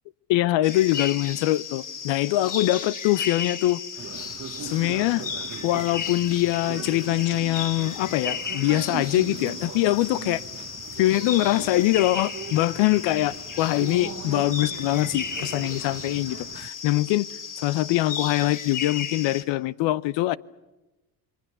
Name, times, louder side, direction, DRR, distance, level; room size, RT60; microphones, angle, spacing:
voice 1, 0.3-3.8 4.6-5.3 5.6-10.4 11.0-17.3 17.6-20.4, left 16 dB, 60° left, 0.8 m, -23 dB
sound 1, 0.6-19.4, left 6 dB, 40° left, 3.0 m, -35 dB
sound 2, 4.0-16.7, right 8 dB, 35° right, 1.1 m, -40 dB
28.5 x 23.0 x 6.8 m
hypercardioid pair, 55°, 49 cm